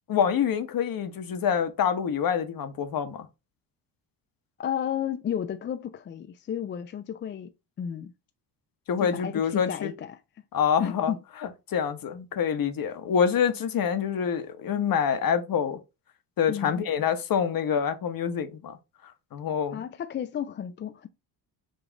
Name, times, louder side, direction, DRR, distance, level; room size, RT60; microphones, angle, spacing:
voice 1, 0.1-3.3 8.9-9.9 10.5-11.1 11.7-15.8 16.4-18.8 19.3-19.8, left 7 dB, 45° left, 0.9 m, -26 dB
voice 2, 4.6-7.5 7.8-8.1 9.0-10.2 10.8-11.2 16.5-16.8 19.7-21.1, left 9 dB, 25° left, 0.3 m, -32 dB
5.2 x 2.3 x 3.7 m
supercardioid pair, 65°, 47 cm